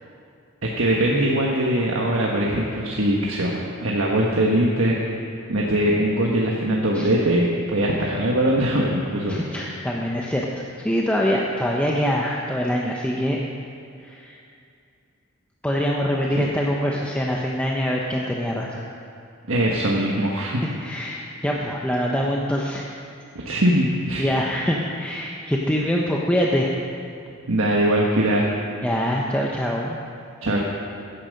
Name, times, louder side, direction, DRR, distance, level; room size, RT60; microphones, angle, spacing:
voice 1, 0.6-3.5 3.8-5.2 5.5-9.4 16.3-16.4 19.5-20.6 23.4-24.3 27.5-28.5 30.4-30.6, right 1 dB, 85° right, -3 dB, 1.3 m, -21 dB
voice 2, 9.3-10.5 10.8-13.4 14.0-14.4 15.6-18.9 20.6-22.9 24.2-26.7 28.8-30.0, equal, 5° left, -2 dB, 0.8 m, -24 dB
15.5 x 10.0 x 5.3 m, 2.4 s
head